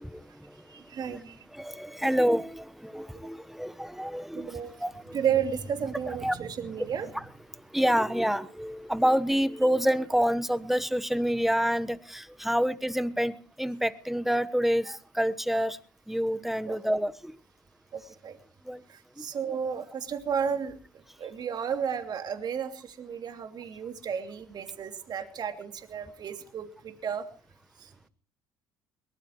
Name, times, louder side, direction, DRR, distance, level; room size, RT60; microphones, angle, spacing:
voice 1, 0.0-0.6 1.1-1.2 1.5-5.2 6.2-6.3 7.5-15.8 16.1-17.4 18.6-18.8 19.2-19.3, equal, ahead, 14 dB, 1.1 m, -28 dB
voice 2, 0.7-1.4 4.3-4.7 5.1-7.1 16.7-16.8 17.9-18.4 18.9-27.3 27.8-27.9, right 7 dB, 50° right, 6 dB, 2.8 m, -33 dB
22.5 x 20.0 x 3.1 m, 0.40 s
hypercardioid pair, 70°, 9 cm